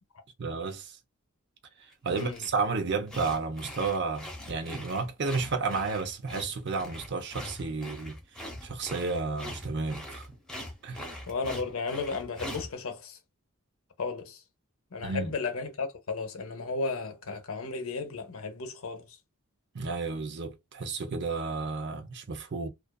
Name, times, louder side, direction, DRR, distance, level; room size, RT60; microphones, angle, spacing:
voice 1, 0.4-0.9 2.0-8.2 8.6-10.3 10.8-11.1 15.0-15.3 19.7-22.7, right 4 dB, 50° right, 0.6 m, -32 dB
sound 1, 1.9-2.6 3.1-12.7, left 1 dB, 5° left, 0.7 m, -42 dB
voice 2, 2.1-2.5 11.3-13.2 14.0-14.4 14.9-19.2, left 4 dB, 65° left, 0.7 m, -34 dB
2.5 x 2.4 x 2.2 m
head